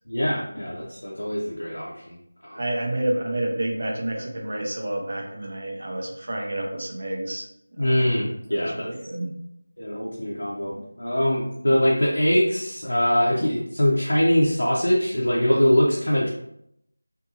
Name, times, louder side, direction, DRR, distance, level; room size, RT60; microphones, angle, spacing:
voice 1, 0.1-2.2 2.4-2.6 7.8-8.9 9.8-16.3, equal, 80° left, -5 dB, 0.6 m, -23 dB
voice 2, 2.5-7.5 7.8-8.1 8.5-9.4, right 1 dB, 50° right, 0 dB, 0.6 m, -29 dB
2.7 x 2.6 x 2.5 m, 0.77 s
figure-of-eight pair, 175°, 0 cm